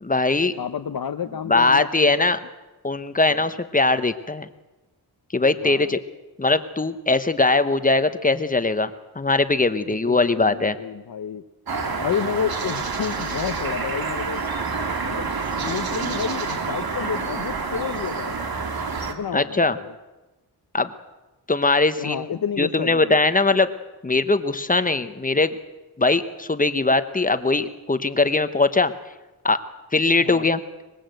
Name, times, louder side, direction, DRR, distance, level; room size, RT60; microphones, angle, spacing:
voice 1, 0.0-0.5 1.5-2.4 2.8-4.5 5.3-6.0 6.4-10.8 19.3-19.8 20.7-20.9 21.5-22.3 22.6-23.7 24.0-25.5 26.0-28.9 29.4-29.6 29.9-30.6, left 3 dB, 20° left, 12 dB, 1.0 m, -20 dB
voice 2, 0.6-2.3 3.3-3.5 5.6-5.9 9.9-11.4 12.0-14.4 15.0-15.3 15.6-18.4 19.1-19.9 22.0-23.2 30.2-30.5, left 7 dB, 65° left, 7 dB, 1.0 m, -30 dB
sound 1, 11.7-19.1, right 4 dB, 65° right, 2.6 m, -28 dB
24.0 x 21.0 x 7.8 m, 1.1 s
wide cardioid pair, 140°, 39 cm